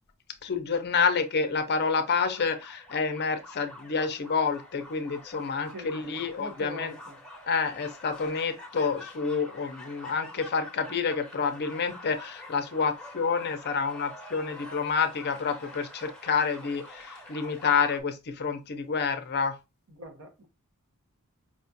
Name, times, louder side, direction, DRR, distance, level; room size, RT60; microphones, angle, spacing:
voice 1, 0.4-6.9 7.5-19.6, left 5 dB, 50° left, 0.5 m, -28 dB
sound 1, 0.9-1.9 2.2-18.0, left 1 dB, 5° left, 0.8 m, -47 dB
voice 2, 5.7-7.2 19.9-20.5, right 1 dB, 65° right, 0.9 m, -43 dB
4.9 x 2.3 x 2.6 m
head